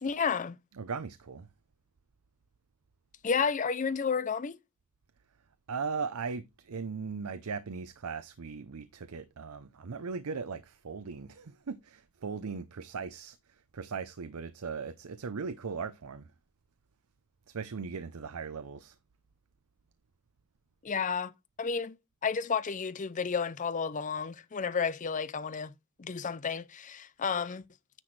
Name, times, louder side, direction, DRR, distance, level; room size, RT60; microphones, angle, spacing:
voice 1, 0.0-0.6 3.2-4.6 20.8-21.3 21.6-22.0 22.2-25.7 26.0-27.6, left 6 dB, 35° left, 0.5 m, -31 dB
voice 2, 0.8-1.5 5.7-13.4 13.7-16.3 17.5-19.0, right 5 dB, 85° right, 0.6 m, -38 dB
9.7 x 6.0 x 3.2 m
head